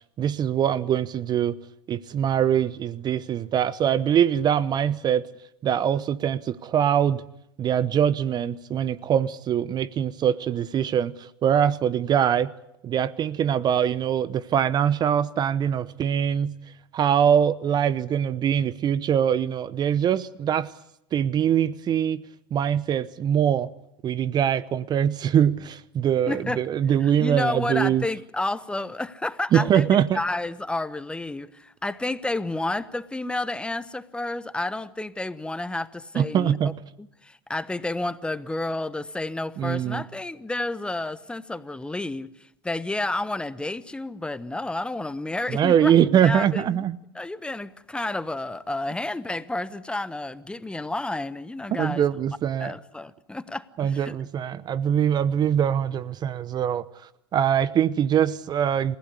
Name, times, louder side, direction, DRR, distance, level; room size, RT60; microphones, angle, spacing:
voice 1, 0.2-1.6 1.9-5.3 5.6-7.2 7.6-12.5 12.8-16.5 16.9-20.7 21.1-22.2 22.5-23.7 24.0-28.0 29.5-30.2 36.1-36.7 39.6-40.0 45.5-47.0 51.8-52.7 53.8-56.8 57.3-59.0, right 9 dB, 35° right, 0.9 m, -23 dB
voice 2, 26.3-26.6 27.0-36.7 37.0-46.8 47.1-52.1 52.6-54.1, left 2 dB, 10° left, 1.2 m, -31 dB
28.5 x 16.0 x 9.7 m
hypercardioid pair, 95°, 12 cm